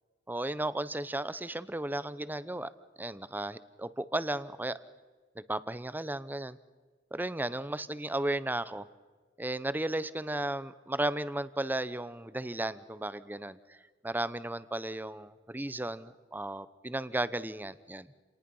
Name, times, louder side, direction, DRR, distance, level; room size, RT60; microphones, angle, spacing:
voice 1, 0.3-2.7 3.0-4.8 5.5-6.6 7.1-8.9 9.4-13.8 14.0-18.1, right 1 dB, 10° right, 15 dB, 0.7 m, -34 dB
29.5 x 19.0 x 5.5 m, 1.4 s
head